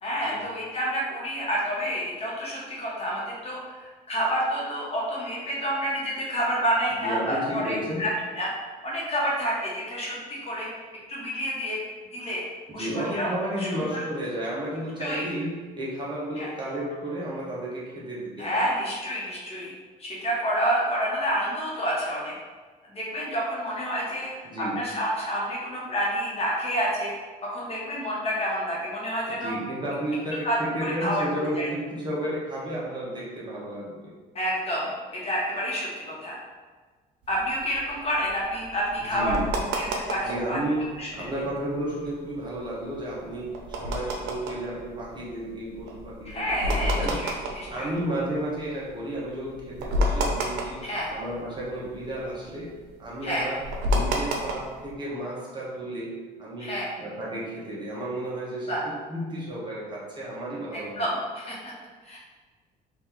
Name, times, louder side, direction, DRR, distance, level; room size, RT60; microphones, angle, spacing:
voice 1, 0.0-8.1 8.4-8.5 8.8-10.7 11.1-11.8 12.1-12.4 12.7-13.3 13.6-13.7 15.0-15.3 16.4-16.5 18.4-19.7 20.0-22.3 22.9-24.3 24.7-27.1 27.5-29.5 30.4-31.2 31.5-31.7 34.3-34.9 35.1-36.4 37.3-39.3 39.7-40.2 40.5-40.6 41.0-41.1 46.2-47.9 50.8-51.1 53.2-53.5 56.6-56.9 58.7-58.8 60.7-61.5 62.0-62.2, equal, 35° left, -5 dB, 1.4 m, -29 dB
voice 2, 6.9-8.1 12.7-18.7 24.4-24.8 29.3-34.1 39.1-39.5 40.2-47.2 47.7-50.8 51.1-61.0, right 1 dB, 25° right, -6 dB, 1.3 m, -32 dB
sound 1, 37.3-40.6 41.0-41.1 41.2-41.5 42.0-48.7 49.1-49.2 49.5-51.6 51.9-54.9, equal, 85° right, 0.7 m, -29 dB
4.2 x 2.8 x 4.0 m, 1.4 s
cardioid pair, 110°, 17 cm